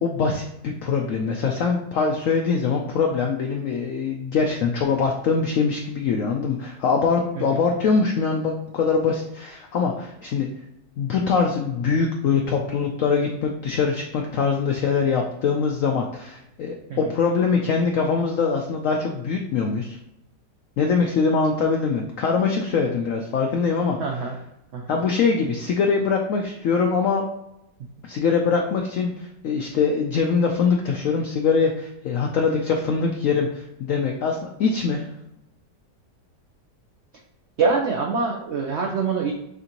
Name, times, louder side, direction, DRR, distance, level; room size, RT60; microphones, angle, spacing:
voice 1, 0.0-10.5 11.0-20.0 20.8-24.0 24.9-27.2 28.0-35.1, left 5 dB, 75° left, 2 dB, 0.7 m, -23 dB
voice 2, 24.0-24.3 24.7-25.0 37.6-39.3, right 4 dB, 85° right, 1 dB, 0.6 m, -25 dB
6.5 x 2.5 x 2.9 m, 0.84 s
omnidirectional pair, 1.9 m